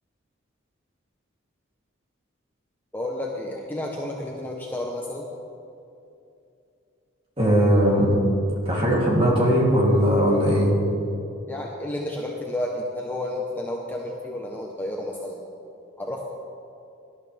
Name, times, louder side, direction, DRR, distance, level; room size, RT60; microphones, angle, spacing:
voice 1, 2.9-5.3 11.5-15.4 16.0-16.2, left 1 dB, 10° left, -1 dB, 0.8 m, -31 dB
voice 2, 7.4-8.1 8.6-10.7, equal, 25° right, -4 dB, 2.8 m, -19 dB
18.5 x 12.0 x 3.3 m, 2.7 s
head